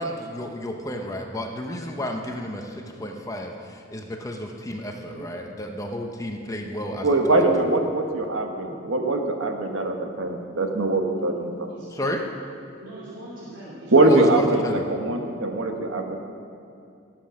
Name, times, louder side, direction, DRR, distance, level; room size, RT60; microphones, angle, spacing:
voice 1, 0.0-7.1 7.4-7.5 11.9-12.2 14.0-14.8, left 1 dB, 15° left, 2 dB, 0.8 m, -32 dB
voice 2, 7.0-11.5 13.9-16.2, right 2 dB, 85° right, 4 dB, 1.4 m, -22 dB
voice 3, 8.6-9.1 11.7-11.9 12.8-14.1 14.3-14.5, right 1 dB, 70° right, -9 dB, 3.2 m, -42 dB
18.5 x 7.7 x 6.4 m, 2.5 s
head